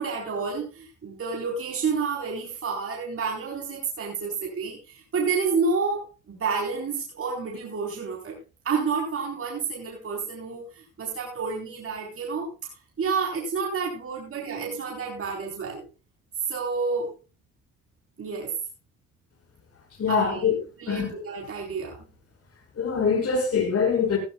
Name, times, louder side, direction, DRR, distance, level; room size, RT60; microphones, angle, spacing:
voice 1, 0.0-8.4 8.6-12.5 13.0-15.9 16.5-17.1 18.2-18.5 20.1-22.0, right 5 dB, 45° right, 4.2 m, -29 dB
voice 2, 20.0-20.6 20.9-21.1 22.8-24.2, left 6 dB, 50° left, 5.9 m, -23 dB
16.0 x 15.5 x 2.3 m
cardioid pair, 90°, 30 cm